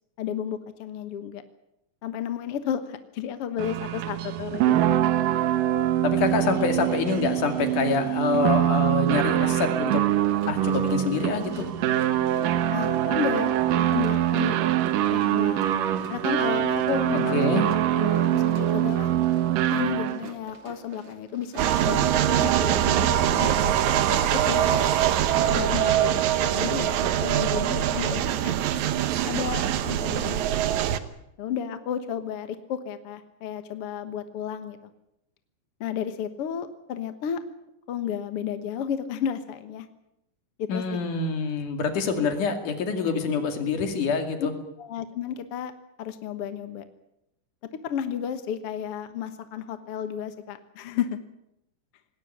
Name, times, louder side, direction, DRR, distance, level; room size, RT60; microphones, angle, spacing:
voice 1, 0.2-1.4 2.0-4.9 12.7-13.5 13.9-14.8 15.1-15.7 16.1-19.1 19.7-25.0 25.5-26.2 26.6-28.5 29.1-30.4 31.4-34.8 35.8-37.4 37.9-39.9 40.6-41.0 44.4-44.5 44.8-45.7 46.0-46.9 47.8-51.1, left 8 dB, 55° left, 10 dB, 1.9 m, -32 dB
sound 1, 3.6-20.3, right 12 dB, 85° right, 2.7 m, -24 dB
voice 2, 6.0-10.1 10.5-11.7 17.3-17.7 40.7-44.5, left 4 dB, 70° left, 7 dB, 3.9 m, -26 dB
Run, 10.1-26.8, right 3 dB, 40° right, 3.4 m, -47 dB
sound 2, 21.6-31.0, right 11 dB, 70° right, 2.3 m, -23 dB
20.0 x 17.0 x 9.9 m, 0.83 s
omnidirectional pair, 3.7 m